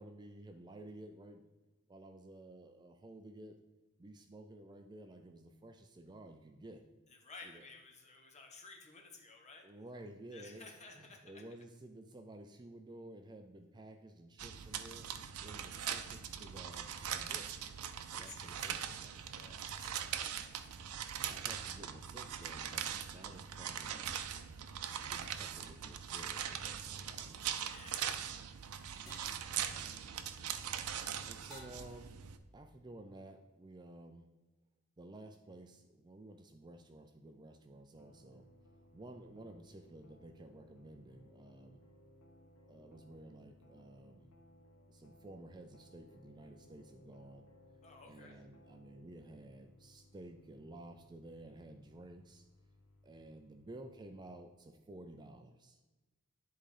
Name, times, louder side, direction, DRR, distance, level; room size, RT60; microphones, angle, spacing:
voice 1, 0.0-1.5 1.9-3.6 4.0-6.8 7.4-7.6 9.6-15.1 15.4-17.5 18.1-19.2 21.2-24.1 24.7-27.6 29.7-30.2 31.3-32.2 32.5-34.3 35.0-38.5 38.8-41.8 42.7-44.3 44.9-47.4 48.0-52.5 53.0-55.8, right 1 dB, 20° right, 6 dB, 0.4 m, -53 dB
voice 2, 7.1-9.7 10.3-11.4 18.0-20.9 27.6-30.2 47.8-48.4, left 3 dB, 30° left, 2 dB, 1.2 m, -57 dB
sound 1, 14.4-32.4, right 9 dB, 85° right, 0.5 m, -41 dB
sound 2, 22.7-22.9 24.8-25.3 27.2-27.5 29.1-29.4 31.5-32.1, equal, ahead, 2.6 m, -57 dB
sound 3, 37.9-54.7, left 1 dB, 75° left, 1.1 m, -63 dB
10.5 x 3.7 x 4.9 m, 1.1 s
head